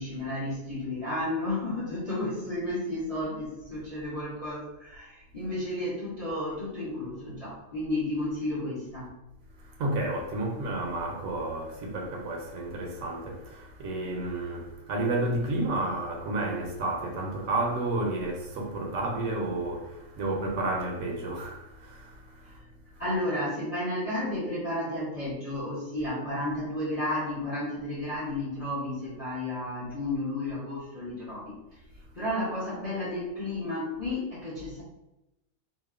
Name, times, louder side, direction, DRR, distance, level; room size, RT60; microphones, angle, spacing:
voice 1, 0.0-9.1 22.5-22.6 23.0-31.6 32.1-34.8, left 1 dB, 35° left, 0.6 m, -32 dB
voice 2, 9.6-22.6 22.9-23.2, right 2 dB, 80° right, 1.0 m, -31 dB
2.8 x 2.1 x 2.3 m
omnidirectional pair, 1.5 m